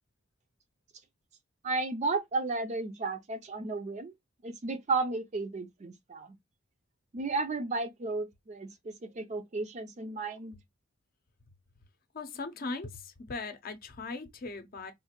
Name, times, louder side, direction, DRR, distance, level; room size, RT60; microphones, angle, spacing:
voice 1, 1.6-4.1 4.4-6.4 7.1-10.6, right 3 dB, 35° right, 0.4 m, -33 dB
voice 2, 12.1-14.9, left 3 dB, 45° left, 0.6 m, -39 dB
3.6 x 2.5 x 2.9 m
head